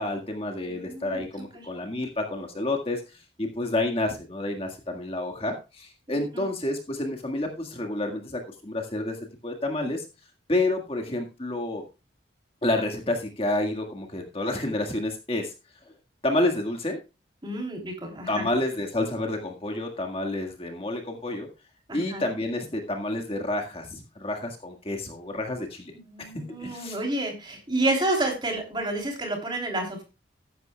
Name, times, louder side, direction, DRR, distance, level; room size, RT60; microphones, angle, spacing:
voice 1, 0.0-3.0 3.4-9.2 9.4-10.0 10.5-11.8 12.6-15.5 16.2-17.0 18.3-21.5 21.9-25.9 26.2-26.3 26.6-27.0, left 2 dB, 30° left, 3 dB, 1.7 m, -29 dB
voice 2, 0.7-1.2 1.5-1.6 6.1-6.5 17.4-18.5 21.9-22.2 26.0-30.0, right 2 dB, 25° right, 1 dB, 3.3 m, -30 dB
14.5 x 11.0 x 2.3 m, 0.28 s
head